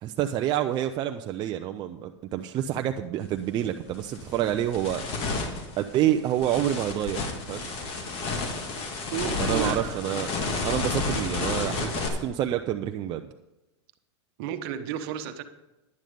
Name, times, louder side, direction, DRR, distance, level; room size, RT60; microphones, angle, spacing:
voice 1, 0.0-5.0 5.8-7.2 7.5-7.7 9.4-10.3 10.6-13.3, right 11 dB, 30° right, 6 dB, 0.5 m, -28 dB
sound 1, 3.2-3.4 3.9-12.1, left 3 dB, 40° left, 2.0 m, -31 dB
voice 2, 9.1-10.2 14.4-15.4, right 9 dB, 55° right, 10 dB, 1.1 m, -33 dB
11.0 x 9.1 x 5.2 m, 0.98 s
hypercardioid pair, 125°, 15 cm